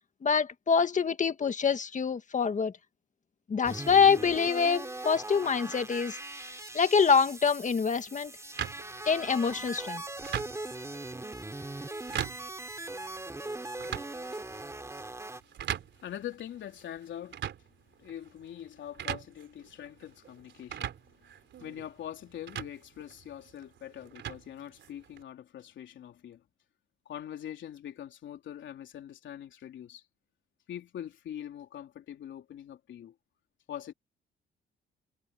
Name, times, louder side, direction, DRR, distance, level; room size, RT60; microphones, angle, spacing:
voice 1, 0.2-2.7 3.5-6.2 6.7-8.3 9.0-10.0, left 6 dB, 40° left, 1.7 m, -25 dB
sound 1, 3.6-15.4, right 2 dB, 15° right, 3.2 m, -40 dB
sound 2, 8.6-25.2, right 9 dB, 65° right, 3.7 m, -42 dB
voice 2, 16.0-17.4 18.0-21.3 21.6-26.4 27.0-30.0 30.7-33.1 33.7-33.9, left 10 dB, 70° left, 3.5 m, -43 dB
cardioid pair, 90°, 20 cm